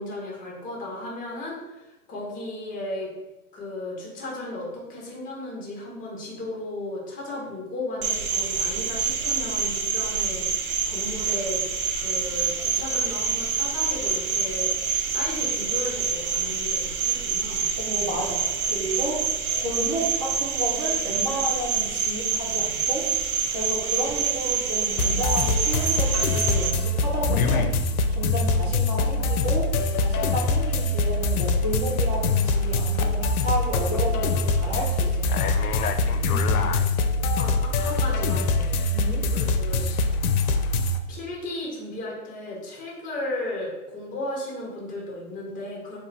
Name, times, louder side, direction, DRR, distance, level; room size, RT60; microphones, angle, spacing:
voice 1, 0.0-1.8 2.1-3.1 3.5-11.7 12.0-14.7 15.1-17.7 36.2-36.7 37.4-38.7 39.3-39.8 41.1-46.0, left 2 dB, 20° left, -3 dB, 0.9 m, -35 dB
Cricket, 8.0-26.7, right 6 dB, 70° right, 0.7 m, -26 dB
voice 2, 17.8-18.4 18.7-19.2 19.5-23.0 23.5-27.7 28.1-29.7 29.9-35.5 38.9-39.2, right 1 dB, 20° right, -3 dB, 0.7 m, -31 dB
sound 1, 25.0-41.0, left 3 dB, 75° left, 0.5 m, -23 dB
3.6 x 2.5 x 3.2 m, 1.0 s
hypercardioid pair, 120°, 45 cm